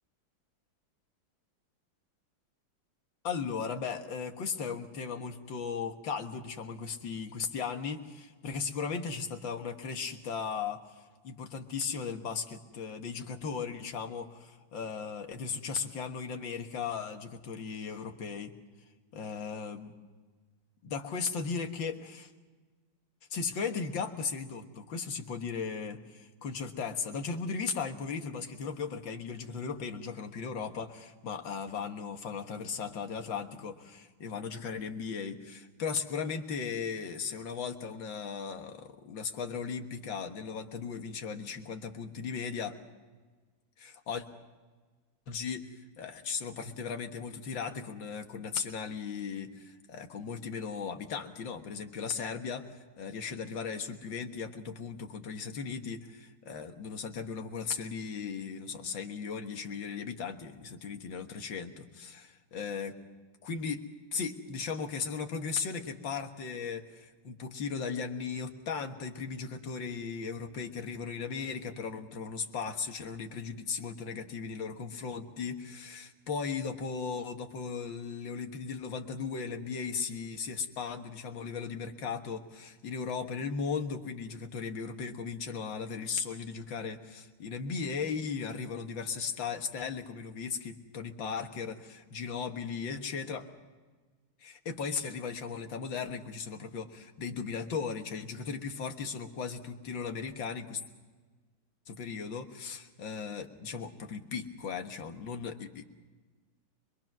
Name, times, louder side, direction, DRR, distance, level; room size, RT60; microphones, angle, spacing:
voice 1, 3.2-10.8 11.2-18.5 19.1-19.9 20.8-22.3 23.3-42.8 43.8-44.3 45.3-45.7 46.0-63.0 63.4-93.5 94.4-100.8 101.9-105.8, left 5 dB, 75° left, 5 dB, 2.2 m, -37 dB
25.5 x 22.5 x 6.1 m, 1.4 s
omnidirectional pair, 2.1 m